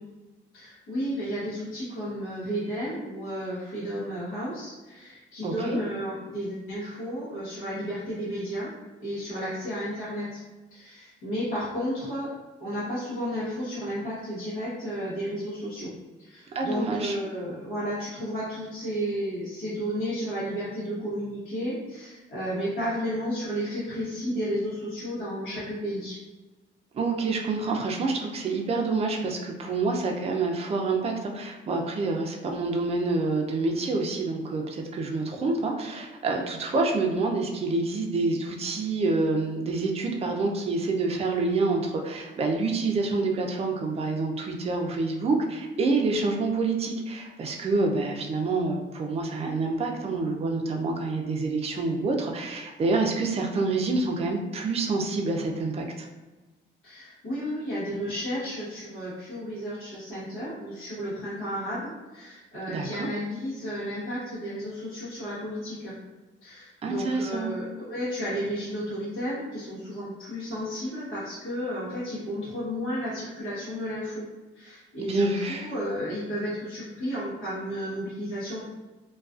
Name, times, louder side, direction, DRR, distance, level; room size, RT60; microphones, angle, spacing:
voice 1, 0.5-8.7 9.0-10.4 10.7-12.3 12.6-15.9 16.2-26.2 56.8-65.9 66.4-74.2 74.5-78.6, equal, 85° left, -10 dB, 1.0 m, -32 dB
voice 2, 5.4-5.8 16.5-17.2 26.9-56.1 62.7-63.1 66.8-67.5 75.1-75.7, right 3 dB, 30° right, 1 dB, 0.4 m, -27 dB
2.3 x 2.3 x 2.3 m, 1.2 s
cardioid pair, 90°, 20 cm